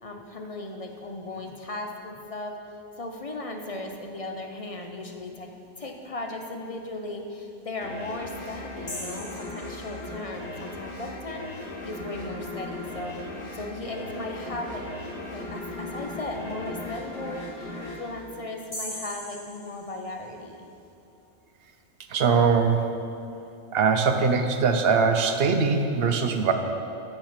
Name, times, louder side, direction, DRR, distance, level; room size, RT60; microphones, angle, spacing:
voice 1, 0.0-2.5 3.0-5.5 5.8-13.1 13.5-14.8 15.3-20.7, left 2 dB, 40° left, 3 dB, 0.5 m, -36 dB
sound 1, 7.8-19.1, left 1 dB, 60° left, 1.6 m, -38 dB
sound 2, 8.9-10.4 18.7-20.5, left 1 dB, 25° left, 2.1 m, -40 dB
voice 2, 22.1-22.9 23.7-26.5, right 5 dB, 60° right, 6 dB, 0.8 m, -22 dB
7.3 x 6.6 x 5.7 m, 2.8 s
omnidirectional pair, 1.3 m